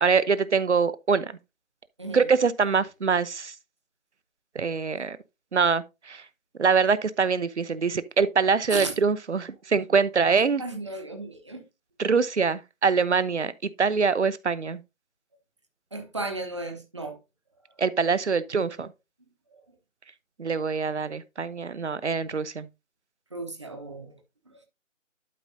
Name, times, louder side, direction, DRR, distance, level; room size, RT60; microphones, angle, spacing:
voice 1, 0.0-1.3 2.1-3.5 4.5-5.2 5.5-6.2 6.6-10.6 12.0-14.8 17.8-18.9 20.4-22.7, right 5 dB, 60° right, 0.9 m, -24 dB
voice 2, 10.6-11.7 15.9-17.2 23.3-24.2 24.5-24.6, right 2 dB, 20° right, 1.0 m, -35 dB
12.0 x 4.9 x 2.7 m
figure-of-eight pair, 170°, 39 cm